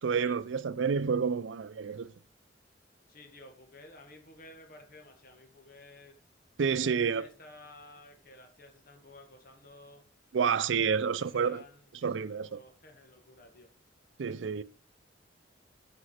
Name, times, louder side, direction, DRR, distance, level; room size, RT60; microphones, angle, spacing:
voice 1, 0.0-2.1 6.6-7.3 10.3-11.6 12.0-12.6 14.2-14.6, right 6 dB, 90° right, 0.5 m, -29 dB
voice 2, 3.1-6.2 6.8-10.0 10.9-13.7, left 2 dB, 55° left, 1.7 m, -53 dB
8.6 x 5.1 x 4.9 m
head